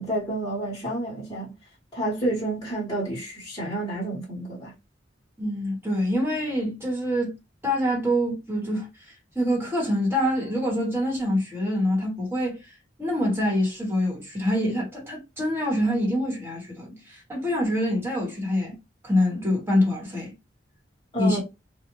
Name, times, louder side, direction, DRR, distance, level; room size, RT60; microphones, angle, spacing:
voice 1, 0.0-1.5 1.9-4.7 21.1-21.4, right 1 dB, 20° left, 1.2 m, -29 dB
voice 2, 5.4-7.3 7.6-12.6 13.0-18.8 19.0-20.3 21.2-21.4, left 1 dB, 15° right, 1.3 m, -25 dB
2.5 x 2.3 x 3.0 m
head